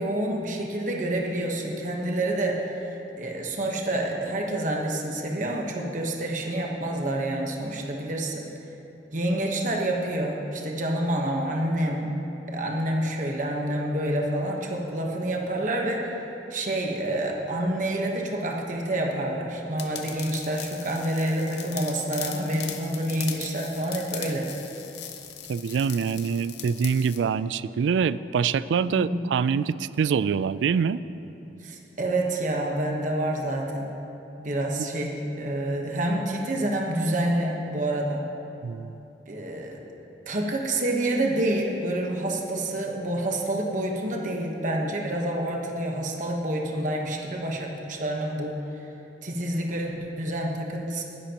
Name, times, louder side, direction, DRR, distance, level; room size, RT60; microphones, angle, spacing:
voice 1, 0.0-8.4 9.1-12.1 12.5-16.1 16.5-24.5 28.8-29.2 31.6-33.9 34.4-38.2 39.3-39.8 40.3-48.6 49.2-51.0, right 1 dB, 45° right, 0 dB, 1.1 m, -28 dB
sound 1, 19.8-27.2, left 9 dB, 65° left, 0.8 m, -39 dB
voice 2, 25.5-31.0 38.6-39.0, right 6 dB, 80° right, 16 dB, 0.3 m, -25 dB
19.0 x 11.0 x 2.9 m, 3.0 s
head